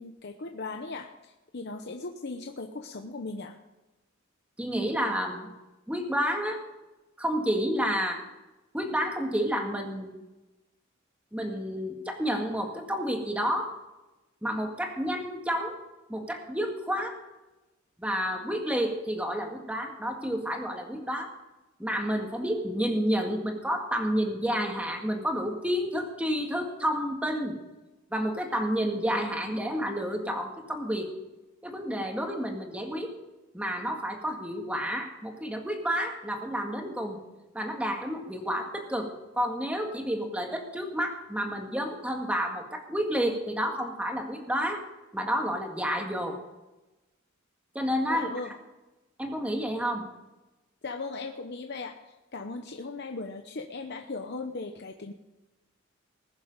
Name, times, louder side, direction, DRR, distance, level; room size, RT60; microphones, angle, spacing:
voice 1, 0.0-3.5 48.1-48.5 50.8-55.1, left 3 dB, 55° left, 4 dB, 0.8 m, -38 dB
voice 2, 4.6-5.5 5.9-6.6 7.2-8.2 8.7-10.1 11.3-13.7 14.4-15.8 16.1-17.1 18.0-21.3 21.8-27.5 28.1-31.1 31.6-33.1 33.5-37.2 37.5-44.8 45.1-46.4 47.8-48.3 49.2-50.1, equal, 5° right, 3 dB, 1.8 m, -30 dB
20.5 x 7.2 x 5.3 m, 1.1 s
head